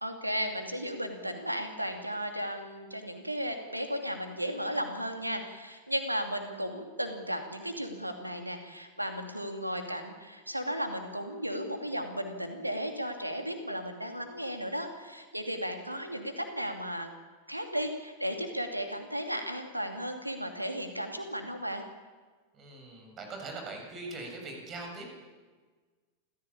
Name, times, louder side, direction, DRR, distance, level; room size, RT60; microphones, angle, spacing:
voice 1, 0.0-17.1 17.5-21.8, equal, 85° right, 6 dB, 2.8 m, -35 dB
voice 2, 22.5-25.1, right 3 dB, 30° right, 2 dB, 7.7 m, -41 dB
28.0 x 15.0 x 8.7 m, 1.4 s
figure-of-eight pair, 90°, 0 cm